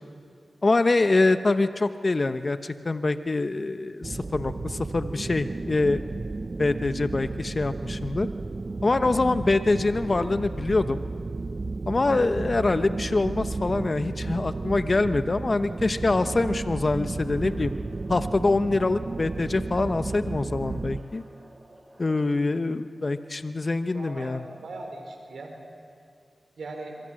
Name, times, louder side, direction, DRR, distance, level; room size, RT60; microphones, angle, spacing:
voice 1, 0.6-6.0 6.6-8.3 8.8-11.0 11.9-17.7 18.1-21.2 22.0-24.4, left 3 dB, 50° left, 10 dB, 1.0 m, -24 dB
sound 1, 4.0-21.0, right 3 dB, 50° right, 0.6 m, -33 dB
sound 2, 16.3-22.2, right 1 dB, 20° right, 6.5 m, -54 dB
voice 2, 23.9-25.6 26.6-27.0, right 2 dB, 80° right, 3 dB, 4.5 m, -39 dB
27.0 x 23.0 x 7.7 m, 2.3 s
cardioid pair, 45°, 0 cm